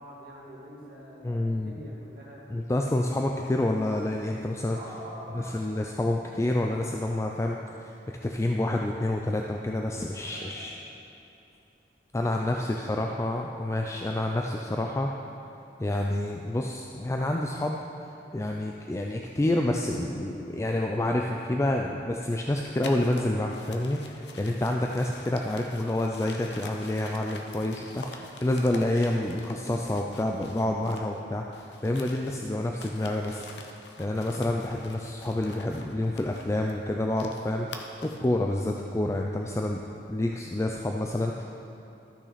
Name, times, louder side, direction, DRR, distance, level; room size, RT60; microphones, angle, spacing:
voice 1, 0.0-2.4 4.7-5.7 10.2-11.0 12.3-13.2, equal, 50° right, -6 dB, 2.2 m, -45 dB
voice 2, 1.2-1.8 2.5-4.8 5.3-7.9 8.2-10.7 12.1-15.1 15.8-17.8 18.3-33.4 34.0-39.8 40.1-41.4, left 1 dB, 15° left, 1 dB, 0.3 m, -28 dB
sound 1, 22.7-31.2 31.5-38.3, left 3 dB, 70° left, 0.7 m, -46 dB
13.5 x 6.1 x 4.1 m, 2.8 s
head